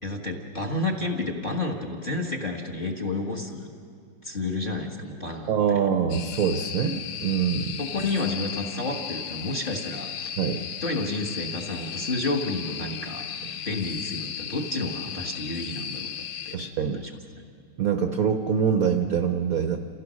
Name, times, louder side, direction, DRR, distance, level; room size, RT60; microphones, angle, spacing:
voice 1, 0.0-3.7 4.2-5.8 7.8-10.3 10.8-13.2 13.6-16.1 16.4-17.1, left 2 dB, 25° left, 2 dB, 1.4 m, -30 dB
voice 2, 5.5-7.8 10.4-10.6 16.5-17.0 17.8-19.8, right 7 dB, 60° right, 7 dB, 0.9 m, -24 dB
sound 1, 6.1-16.6, left 8 dB, 70° left, 0.9 m, -36 dB
28.5 x 16.0 x 6.3 m, 2.4 s
omnidirectional pair, 2.4 m